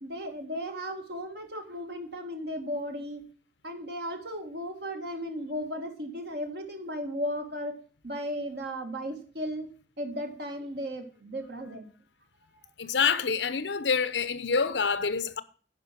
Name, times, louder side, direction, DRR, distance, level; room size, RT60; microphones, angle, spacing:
voice 1, 0.0-3.2 3.6-7.7 8.0-9.7 10.0-11.9, equal, 65° right, 2.0 m, -35 dB
voice 2, 12.8-15.4, left 5 dB, 85° left, 0.8 m, -27 dB
10.5 x 5.0 x 7.5 m
head